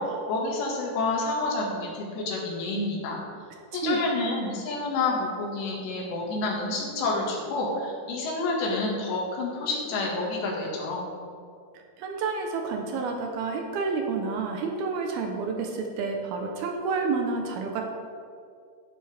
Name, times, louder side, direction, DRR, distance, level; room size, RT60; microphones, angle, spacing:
voice 1, 0.0-3.2 3.7-11.0, left 2 dB, 85° left, -3 dB, 4.1 m, -29 dB
voice 2, 12.0-17.8, right 4 dB, 70° right, 2 dB, 2.6 m, -29 dB
13.5 x 10.5 x 3.5 m, 2.3 s
omnidirectional pair, 4.9 m